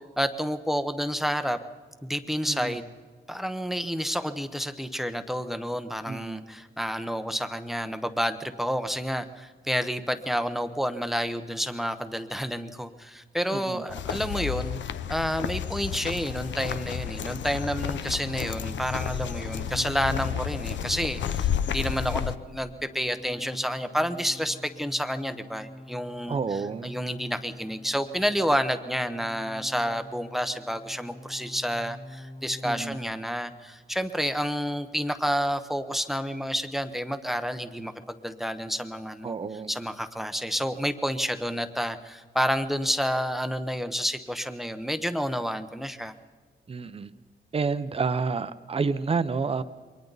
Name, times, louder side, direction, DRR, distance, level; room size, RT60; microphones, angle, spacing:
voice 1, 0.2-1.6 2.0-2.9 3.3-14.8 15.1-39.3 39.7-46.1, equal, ahead, 9 dB, 0.9 m, -29 dB
voice 2, 2.5-2.8 6.1-6.4 13.5-13.8 26.3-26.9 32.6-33.0 39.2-39.7 46.7-47.1 47.5-49.6, right 4 dB, 30° right, 12 dB, 0.8 m, -29 dB
sound 1, 13.9-22.4, left 9 dB, 80° left, 0.7 m, -31 dB
sound 2, 16.7-32.9, left 1 dB, 30° left, 2.1 m, -47 dB
Bowed string instrument, 18.3-22.6, right 2 dB, 50° right, 1.2 m, -48 dB
28.0 x 23.5 x 4.0 m, 1.5 s
wide cardioid pair, 155°, 19 cm